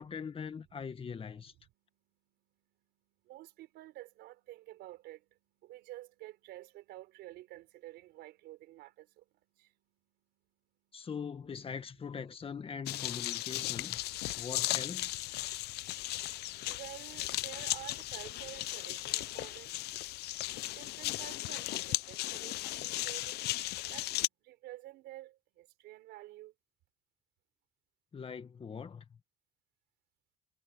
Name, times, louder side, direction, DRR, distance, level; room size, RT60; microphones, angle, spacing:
voice 1, 0.0-1.5 10.9-14.0 14.4-15.2 28.1-29.2, left 6 dB, 35° left, 1.8 m, -42 dB
voice 2, 3.3-5.2 5.7-8.9 16.7-19.7 20.8-23.4 23.9-24.1 24.5-25.3 25.8-26.5, right 16 dB, 85° right, 4.5 m, -49 dB
sound 1, 12.9-24.3, left 17 dB, 75° left, 0.6 m, -36 dB
cardioid pair, 110°, 17 cm